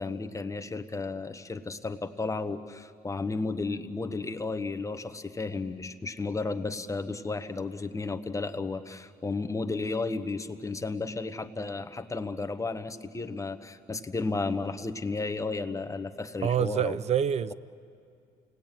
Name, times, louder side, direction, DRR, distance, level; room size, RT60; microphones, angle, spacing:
voice 1, 0.0-17.0, left 3 dB, 20° left, 8 dB, 1.1 m, -33 dB
voice 2, 16.4-17.5, right 9 dB, 40° right, 17 dB, 0.6 m, -26 dB
29.5 x 19.5 x 9.0 m, 2.4 s
cardioid pair, 110°, 17 cm